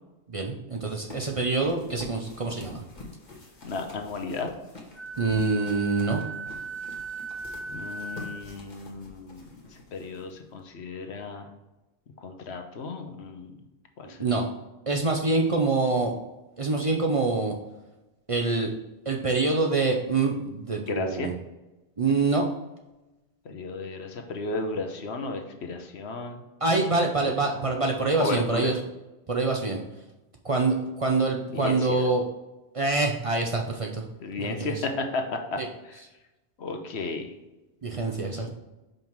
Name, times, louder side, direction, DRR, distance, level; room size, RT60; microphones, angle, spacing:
voice 1, 0.3-2.8 5.2-6.2 14.2-14.5 14.9-16.2 16.6-17.5 18.3-18.7 19.1-21.3 22.0-22.5 26.6-28.8 29.3-29.8 30.4-32.2 32.7-34.0 34.4-34.7 35.6-35.7 37.8-38.5, right 3 dB, 35° right, 1 dB, 0.6 m, -25 dB
sound 1, 1.1-10.6, left 2 dB, 45° left, 1.4 m, -46 dB
voice 2, 3.6-4.5 7.7-11.5 12.2-13.6 14.0-14.5 20.9-21.3 23.4-26.4 27.3-27.4 28.2-28.8 31.5-32.0 34.2-36.0 36.6-37.3 38.3-38.5, left 3 dB, 75° left, 5 dB, 1.2 m, -34 dB
Wind instrument woodwind instrument, 4.9-8.5, right 4 dB, 25° left, 1.3 m, -37 dB
5.6 x 5.3 x 4.5 m, 1.0 s
omnidirectional pair, 1.1 m